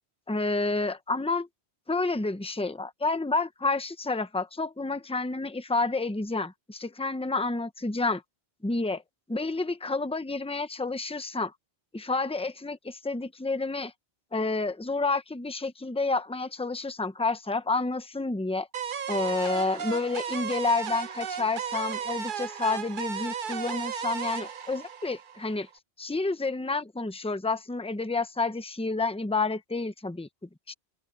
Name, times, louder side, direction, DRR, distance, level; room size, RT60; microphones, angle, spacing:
voice 1, 0.3-1.5 1.9-8.2 8.6-9.0 9.3-11.5 11.9-13.9 14.3-18.7 19.1-25.7 26.0-30.3 30.7-30.8, left 3 dB, 5° left, 0.8 m, -29 dB
sound 1, 18.7-25.7, right 7 dB, 50° right, 0.8 m, -34 dB
open air
omnidirectional pair, 1.1 m